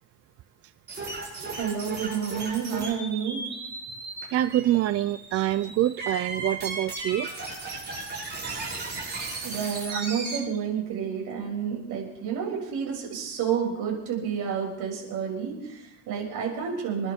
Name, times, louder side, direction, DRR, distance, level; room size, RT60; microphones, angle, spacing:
sound 1, 0.9-10.4, right 3 dB, 30° right, 7.3 m, -36 dB
voice 1, 1.4-3.4 9.4-17.1, right 7 dB, 75° right, -2 dB, 6.6 m, -30 dB
voice 2, 4.3-7.3 7.7-7.8 9.9-10.0, right 13 dB, 50° right, 13 dB, 0.4 m, -26 dB
27.5 x 11.5 x 3.6 m, 0.87 s
cardioid pair, 150°, 32 cm